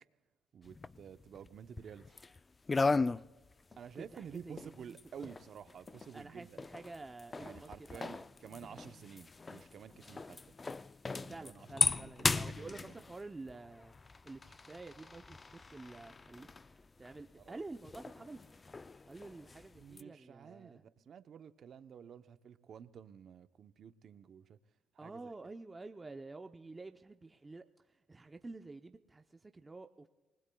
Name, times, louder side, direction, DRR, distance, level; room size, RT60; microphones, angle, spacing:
voice 1, 0.5-2.0 3.8-6.5 7.4-10.5 11.1-11.7 11.9-13.0 17.4-17.6 19.7-24.6 25.0-25.3, right 8 dB, 60° right, 11 dB, 0.7 m, -51 dB
sound 1, 0.6-2.4 2.7-20.0, left 3 dB, 30° left, 0.4 m, -38 dB
voice 2, 3.7-5.4 6.1-8.3 11.3-13.9 14.2-16.5 17.0-18.4 19.0-20.8 25.0-30.1, right 3 dB, 20° right, 6 dB, 0.7 m, -49 dB
27.5 x 20.0 x 2.3 m, 1.2 s
cardioid pair, 90°, 0 cm